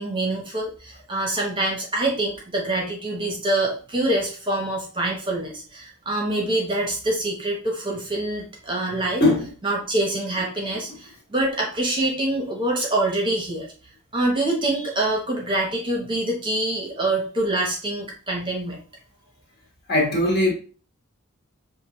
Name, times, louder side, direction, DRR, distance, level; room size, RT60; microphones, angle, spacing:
voice 1, 0.0-9.2 9.6-13.7 14.1-18.8, right 1 dB, 20° right, 0.8 m, -25 dB
voice 2, 19.9-20.5, left 1 dB, 45° left, 1.4 m, -19 dB
6.5 x 2.5 x 3.0 m
head